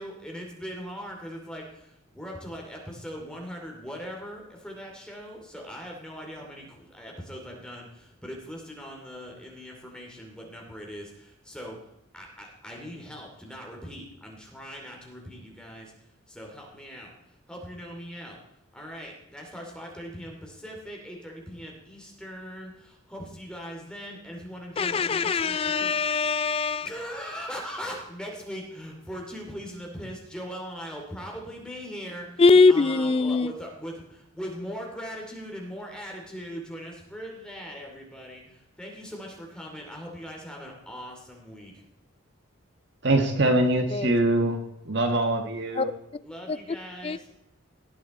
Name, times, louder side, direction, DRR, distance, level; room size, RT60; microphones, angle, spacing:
voice 1, 0.0-11.8 12.1-15.9 16.3-17.1 17.5-18.4 18.7-25.9 26.8-41.8 46.2-47.2, equal, 5° left, 0 dB, 2.7 m, -40 dB
voice 2, 24.8-26.9 32.4-33.5 43.9-44.0 45.8-45.9 46.5-46.6 47.0-47.2, left 4 dB, 25° left, 16 dB, 0.3 m, -21 dB
voice 3, 43.0-44.5 44.9-45.9, right 1 dB, 55° right, 5 dB, 1.5 m, -23 dB
18.0 x 8.4 x 4.2 m, 0.83 s
head